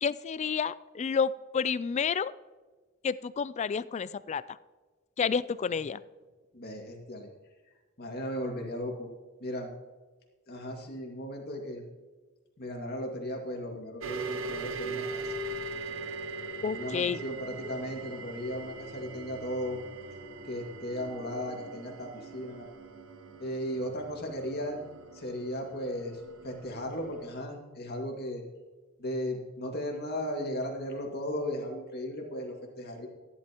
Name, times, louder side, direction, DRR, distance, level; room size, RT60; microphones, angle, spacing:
voice 1, 0.0-2.3 3.0-4.4 5.2-6.0 16.6-17.2, left 6 dB, 35° left, 17 dB, 0.3 m, -30 dB
voice 2, 6.5-7.3 8.0-9.1 9.4-9.7 10.5-11.8 12.6-15.3 16.7-19.8 20.5-22.7 23.4-24.8 25.1-28.4 29.0-33.1, equal, 50° left, 1 dB, 2.1 m, -36 dB
sound 1, 14.0-27.4, right 3 dB, 75° right, 0.8 m, -41 dB
14.5 x 11.0 x 3.0 m, 1.3 s
head